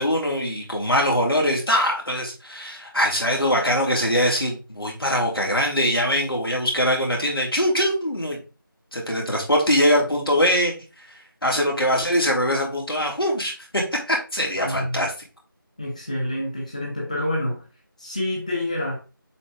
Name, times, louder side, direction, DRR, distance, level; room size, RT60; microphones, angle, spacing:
voice 1, 0.0-8.4 8.9-15.1, equal, 90° left, 3.2 m, -22 dB
voice 2, 14.6-15.1 15.8-17.6 18.0-19.0, left 1 dB, 20° left, 1.0 m, -27 dB
7.0 x 4.3 x 3.5 m
figure-of-eight pair, 175°, 12 cm